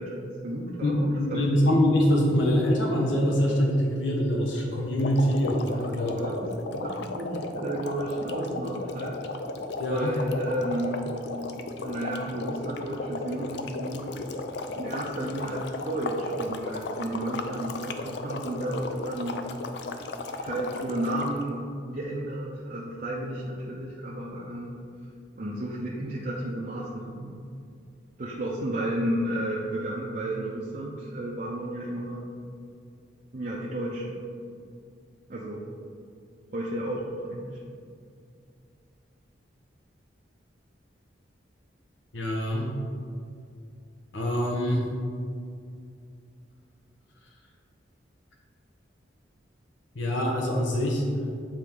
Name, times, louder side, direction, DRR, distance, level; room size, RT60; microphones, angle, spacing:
voice 1, 0.0-1.5 5.7-6.3 6.6-9.2 9.9-11.1 11.8-14.1 14.7-19.4 20.4-24.8 25.4-27.3 28.2-32.2 33.3-34.2 35.3-35.7 36.5-37.6, right 1 dB, 45° right, -5 dB, 0.6 m, -32 dB
voice 2, 0.8-6.1 9.8-10.2 42.1-42.7 44.1-44.9 49.9-51.0, equal, 80° left, -1 dB, 0.9 m, -24 dB
sound 1, 5.0-21.4, left 3 dB, 65° left, 0.4 m, -35 dB
7.6 x 4.3 x 3.7 m, 2.3 s
head